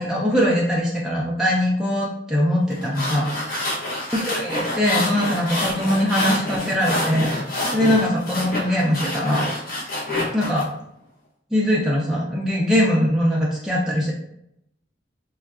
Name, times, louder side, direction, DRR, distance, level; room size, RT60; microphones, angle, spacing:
voice 1, 0.0-3.7 4.3-7.4 7.7-9.5 10.3-10.7 11.5-14.1, equal, 5° right, -5 dB, 0.3 m, -21 dB
sound 1, 2.7-10.6, left 1 dB, 50° left, 0.8 m, -27 dB
3.4 x 2.2 x 2.3 m, 0.78 s
head